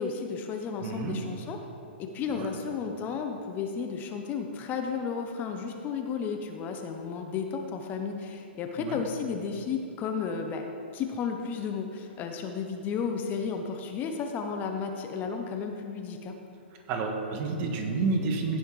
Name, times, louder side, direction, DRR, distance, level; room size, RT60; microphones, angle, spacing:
voice 1, 0.0-1.6 2.0-10.7 10.9-16.4, left 6 dB, 30° left, 4 dB, 0.9 m, -33 dB
voice 2, 0.8-1.2 2.3-2.5 8.8-9.0 16.9-18.6, right 3 dB, 35° right, 2 dB, 1.6 m, -30 dB
16.0 x 5.7 x 4.9 m, 2.6 s
hypercardioid pair, 125°, 6 cm